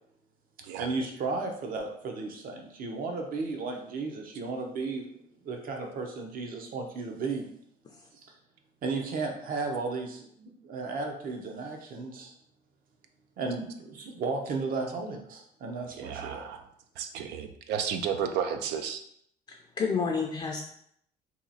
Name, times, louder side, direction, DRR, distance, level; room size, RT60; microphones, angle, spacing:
voice 1, 0.8-5.0 5.4-7.5 8.8-12.3 13.4-16.5, right 3 dB, 55° right, 2 dB, 0.8 m, -34 dB
voice 2, 16.0-16.6 17.0-19.0, right 7 dB, 85° right, 7 dB, 0.5 m, -32 dB
voice 3, 19.5-20.6, left 5 dB, 25° left, 0 dB, 0.4 m, -30 dB
2.9 x 2.4 x 4.0 m, 0.69 s
cardioid pair, 110°, 17 cm